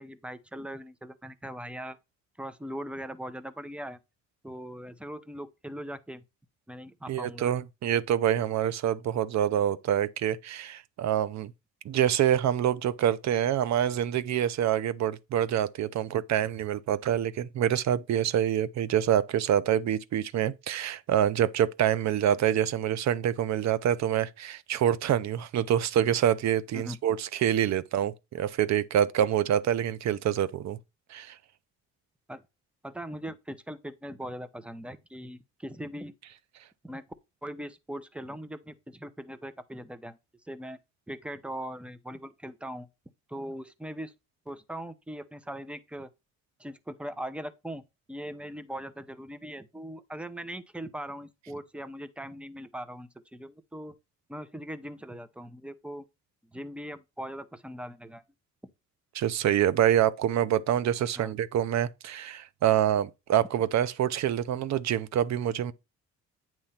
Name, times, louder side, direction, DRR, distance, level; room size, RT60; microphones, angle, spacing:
voice 1, 0.0-2.0 2.4-4.0 4.4-6.2 6.7-7.5 26.7-27.0 32.3-32.4 32.8-36.1 36.8-37.0 37.4-40.2 40.4-40.8 41.1-42.9 43.3-44.1 44.5-46.1 46.6-47.8 48.1-53.9 54.3-56.1 56.5-58.2 61.2-61.3, equal, 5° right, 0.7 m, -40 dB
voice 2, 7.1-11.5 11.8-30.8 31.1-31.4 59.1-65.7, right 10 dB, 65° right, 0.7 m, -26 dB
8.9 x 3.1 x 5.7 m
cardioid pair, 90°, 30 cm